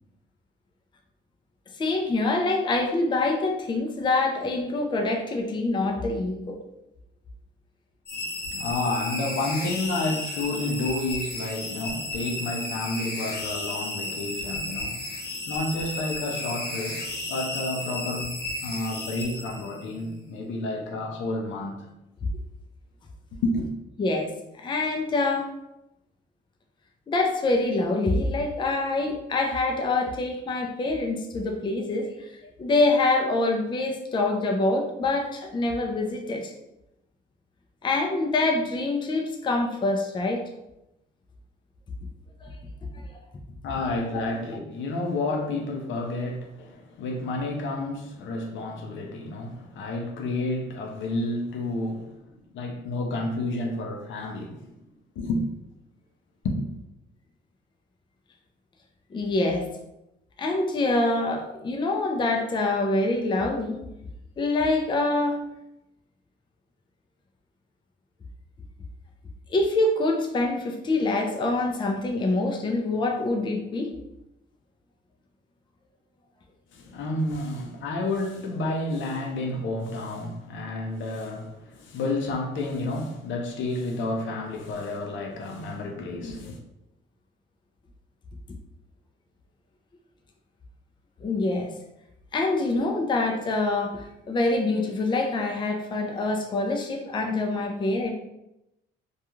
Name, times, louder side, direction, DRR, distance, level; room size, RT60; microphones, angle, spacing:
voice 1, 1.8-6.6 24.0-24.3 24.6-25.5 27.1-32.3 32.6-36.5 37.8-40.4 42.4-42.6 59.1-59.7 60.4-63.7 64.4-65.4 69.5-73.9 91.2-91.7 92.3-98.1, left 2 dB, 25° left, 0.4 m, -25 dB
voice 2, 8.1-21.9 23.4-23.7 43.6-54.7 55.2-55.4 56.4-56.7 76.7-86.6, left 2 dB, 70° left, 0.5 m, -30 dB
sound 1, 8.1-19.9, left 1 dB, 55° left, 1.0 m, -33 dB
2.3 x 2.3 x 2.9 m
cardioid pair, 90°, 20 cm